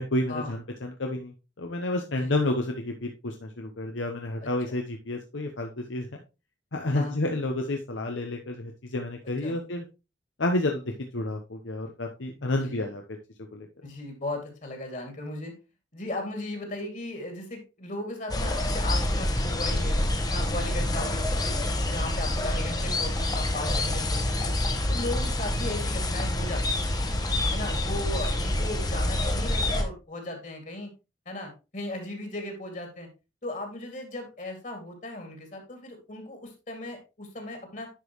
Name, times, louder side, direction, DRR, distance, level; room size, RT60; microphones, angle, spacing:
voice 1, 0.0-6.1 6.7-9.8 10.4-13.0 13.5-13.7, left 1 dB, 80° left, 3 dB, 0.9 m, -30 dB
voice 2, 4.4-4.8 6.9-7.2 9.4-9.6 12.4-12.9 13.8-15.5 15.9-21.5 21.9-24.5 24.9-27.1 27.5-30.9 31.3-33.1 33.4-37.9, left 1 dB, 45° left, 4 dB, 2.3 m, -37 dB
sound 1, 18.3-29.8, left 1 dB, 20° left, 1.0 m, -27 dB
10.5 x 5.2 x 3.0 m, 0.28 s
head